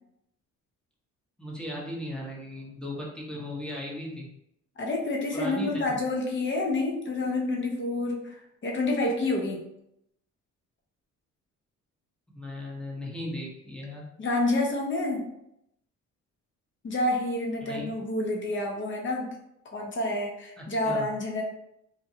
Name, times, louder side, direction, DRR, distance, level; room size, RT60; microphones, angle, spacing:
voice 1, 1.4-4.3 5.3-6.0 12.3-14.0 17.6-17.9 20.6-21.1, left 1 dB, 5° left, -4 dB, 0.8 m, -37 dB
voice 2, 4.8-9.6 14.2-15.2 16.8-19.3 19.7-21.4, left 2 dB, 40° left, 0 dB, 0.7 m, -28 dB
2.7 x 2.1 x 2.7 m, 0.81 s
cardioid pair, 90°, 30 cm